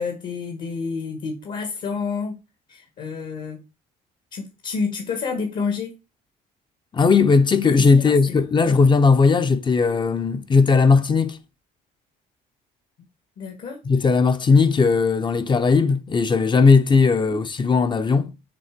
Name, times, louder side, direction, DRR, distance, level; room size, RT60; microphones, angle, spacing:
voice 1, 0.0-2.4 2.7-3.6 4.3-5.9 7.8-8.1 8.6-8.8 13.4-13.8 17.2-17.4, left 5 dB, 60° left, 1.7 m, -29 dB
voice 2, 6.9-11.4 13.8-18.3, left 4 dB, 30° left, 0.7 m, -17 dB
6.8 x 3.3 x 5.2 m
cardioid pair, 110°, 17 cm